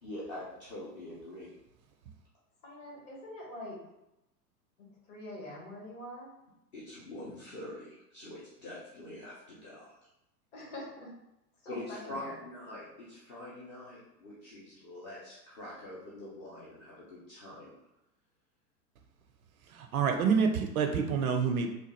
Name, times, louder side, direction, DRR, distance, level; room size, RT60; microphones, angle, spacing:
voice 1, 0.0-1.5 6.7-9.9 11.7-17.7, left 1 dB, 20° left, -8 dB, 0.4 m, -44 dB
voice 2, 2.6-3.8 5.1-6.3 10.5-11.1 11.6-12.4, left 1 dB, 45° left, -3 dB, 1.4 m, -44 dB
voice 3, 19.7-21.7, right 6 dB, 60° right, 5 dB, 0.5 m, -27 dB
3.1 x 2.2 x 2.9 m, 0.89 s
figure-of-eight pair, 95°, 50 cm